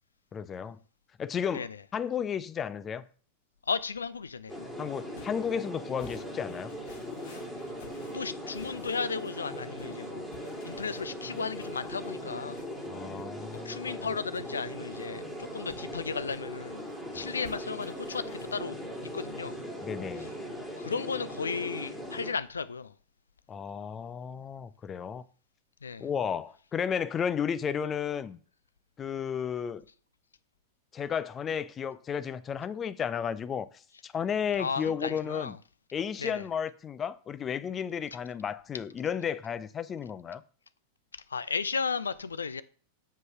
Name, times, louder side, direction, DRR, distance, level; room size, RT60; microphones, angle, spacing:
voice 1, 0.3-0.8 1.2-3.0 4.8-6.7 12.9-14.0 17.1-17.3 19.8-20.3 23.5-25.2 26.0-28.4 29.0-29.8 30.9-33.7 34.0-35.6 35.9-40.4, left 7 dB, 25° left, 0.6 m, -33 dB
voice 2, 3.7-4.5 8.1-10.3 10.6-12.6 13.6-16.8 17.1-18.2 18.5-18.8 19.1-19.6 20.8-22.9 25.8-26.1 34.6-35.6 36.2-36.4 41.1-42.6, left 5 dB, 75° left, 0.5 m, -34 dB
sound 1, 4.5-22.3, equal, 5° left, 2.9 m, -39 dB
sound 2, 5.1-19.5, left 4 dB, 55° left, 2.0 m, -56 dB
7.5 x 5.4 x 5.7 m
figure-of-eight pair, 90°, 0 cm